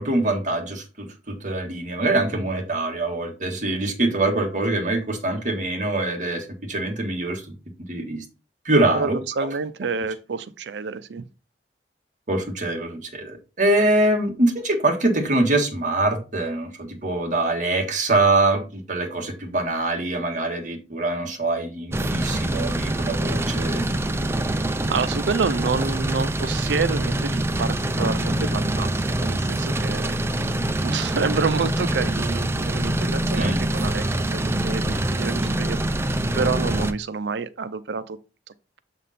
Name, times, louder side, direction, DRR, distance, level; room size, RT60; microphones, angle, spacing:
voice 1, 0.0-7.4 7.9-8.2 8.6-9.2 12.3-23.8 33.3-33.6, right 2 dB, 45° right, 1.6 m, -24 dB
voice 2, 9.4-11.2 24.9-35.8 36.3-38.2, right 5 dB, 75° right, 0.5 m, -28 dB
sound 1, 21.9-36.9, right 1 dB, 15° right, 0.5 m, -25 dB
7.4 x 3.6 x 4.1 m
head